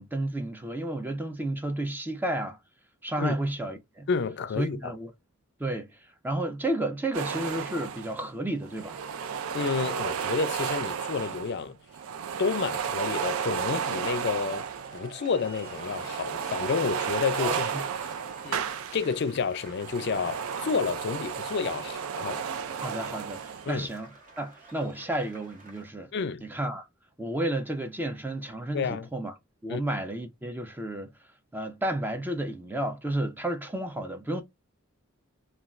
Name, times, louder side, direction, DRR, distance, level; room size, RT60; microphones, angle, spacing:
voice 1, 0.0-2.6 3.0-4.1 4.6-5.1 5.6-6.0 6.2-9.0 17.4-17.8 22.8-24.1 24.4-26.1 26.4-26.9 27.2-29.3 29.6-31.1 31.5-34.4, right 1 dB, 10° right, 0.4 m, -32 dB
voice 2, 4.1-4.9 9.5-11.8 12.4-17.7 18.0-18.1 18.4-18.6 18.9-22.5 23.7-23.9 26.1-26.4 28.7-29.1 29.7-29.8, left 5 dB, 55° left, 0.4 m, -30 dB
sound 1, 7.1-8.3 8.6-11.6 11.9-15.0 15.4-19.2 19.6-23.8, right 7 dB, 80° right, 0.4 m, -33 dB
sound 2, 14.3-25.9, right 3 dB, 40° right, 0.9 m, -49 dB
2.4 x 2.3 x 3.1 m
head